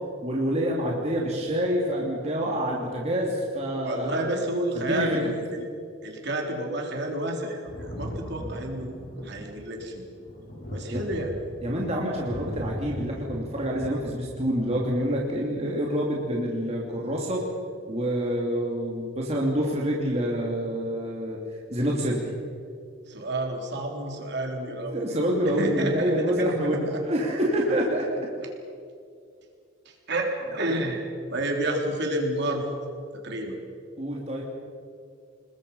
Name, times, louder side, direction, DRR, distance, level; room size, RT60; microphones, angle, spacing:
voice 1, 0.2-4.3 4.9-5.3 10.9-11.0 11.6-17.4 17.9-21.4 21.7-22.3 24.9-28.1 34.0-34.4, equal, 30° right, -2 dB, 2.7 m, -27 dB
voice 2, 3.8-5.1 5.4-5.6 6.0-8.9 9.2-10.0 10.7-11.4 23.1-25.1 25.5-26.6 26.9-27.0 28.4-28.5 29.9-31.0 31.3-32.7 33.2-33.6, right 1 dB, 55° right, 1 dB, 3.6 m, -30 dB
Thunder, 7.7-15.0 16.1-16.2, equal, 50° left, 4.9 m, -39 dB
29.0 x 20.5 x 5.6 m, 2.3 s
head